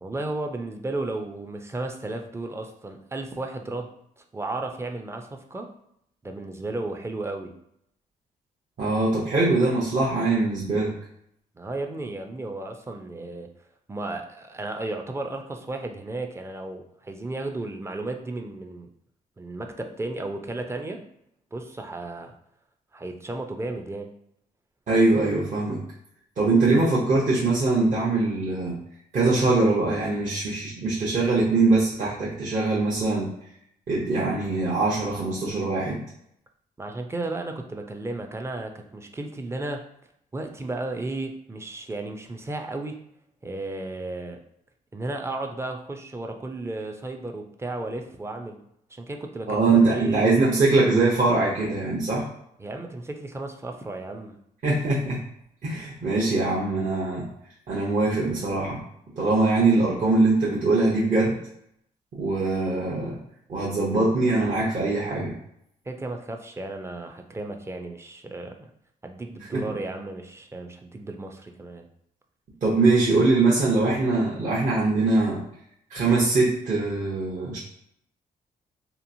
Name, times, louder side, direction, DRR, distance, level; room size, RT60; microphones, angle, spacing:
voice 1, 0.0-5.7 6.2-7.5 11.6-13.5 13.9-18.9 19.4-21.0 21.5-22.4 22.9-24.1 36.8-39.8 40.3-43.0 43.4-44.4 44.9-48.6 48.9-50.3 52.6-54.4 65.9-68.7 69.0-71.9, right 2 dB, 15° right, 4 dB, 0.4 m, -34 dB
voice 2, 8.8-10.9 24.9-25.8 26.4-28.8 29.1-33.3 33.9-36.0 49.5-52.3 54.6-55.2 55.6-57.3 57.7-58.8 59.2-61.4 62.1-63.2 63.5-65.3 69.5-69.6 72.6-75.4 75.9-77.6, right 3 dB, 50° right, -6 dB, 0.8 m, -22 dB
2.9 x 2.3 x 2.6 m, 0.74 s
cardioid pair, 75°, 16 cm